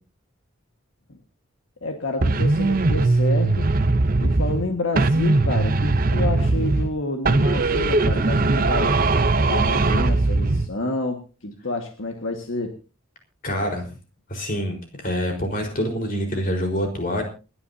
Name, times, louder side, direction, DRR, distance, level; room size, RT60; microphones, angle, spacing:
voice 1, 1.8-3.7 4.2-9.0 9.5-12.8, left 2 dB, 70° left, 4 dB, 1.8 m, -29 dB
sound 1, 2.2-4.7 5.0-7.0 7.3-10.7, right 2 dB, 45° right, 0.7 m, -20 dB
voice 2, 13.4-13.8 14.3-17.2, equal, 40° left, 3 dB, 4.6 m, -26 dB
28.5 x 11.0 x 2.8 m, 0.33 s
head